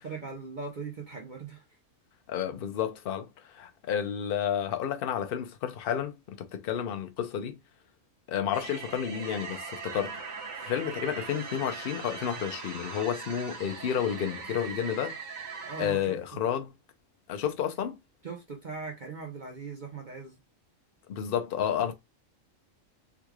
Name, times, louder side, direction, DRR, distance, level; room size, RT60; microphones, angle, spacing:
voice 1, 0.0-1.6 15.6-16.4 18.2-20.4, right 4 dB, 45° right, 0.8 m, -40 dB
voice 2, 2.3-7.6 8.3-10.2 10.6-15.2 15.8-16.7 17.3-18.0 21.1-21.9, left 9 dB, 55° left, 0.7 m, -31 dB
sound 1, 8.5-15.9, right 5 dB, 90° right, 1.5 m, -40 dB
3.6 x 3.1 x 2.3 m
omnidirectional pair, 1.4 m